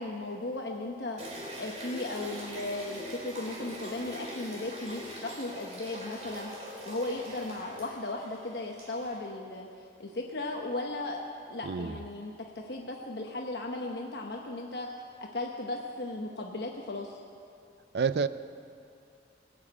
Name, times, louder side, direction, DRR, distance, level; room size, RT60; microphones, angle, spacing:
voice 1, 0.0-9.7 10.0-11.2 11.5-14.9 15.3-17.2, left 2 dB, 70° left, 0 dB, 1.0 m, -36 dB
sound 1, 1.2-9.2, equal, 40° right, 3.0 m, -43 dB
voice 2, 11.6-12.0 17.9-18.3, right 5 dB, 70° right, 14 dB, 0.4 m, -28 dB
20.0 x 7.2 x 8.7 m, 2.4 s
head